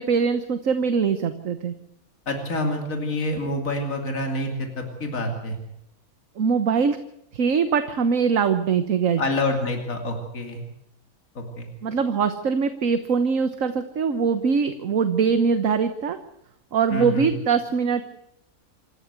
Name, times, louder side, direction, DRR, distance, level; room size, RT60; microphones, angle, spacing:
voice 1, 0.0-1.7 6.4-7.0 7.3-9.2 11.8-16.2 16.7-18.0, right 6 dB, 65° right, 9 dB, 1.5 m, -22 dB
voice 2, 2.3-5.6 9.2-10.6 11.3-11.7 16.9-17.3, left 2 dB, 65° left, 3 dB, 3.3 m, -27 dB
27.5 x 13.5 x 8.2 m, 0.80 s
omnidirectional pair, 1.5 m